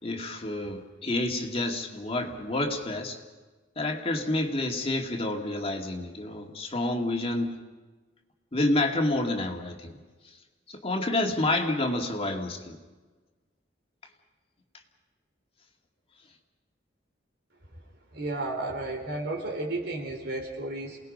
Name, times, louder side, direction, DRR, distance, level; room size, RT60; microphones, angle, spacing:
voice 1, 0.0-3.2 3.8-7.5 8.5-10.0 10.7-12.8, left 2 dB, 35° left, 2 dB, 2.2 m, -29 dB
voice 2, 18.1-21.0, right 2 dB, 65° right, 3 dB, 4.2 m, -33 dB
29.0 x 19.5 x 5.4 m, 1.3 s
head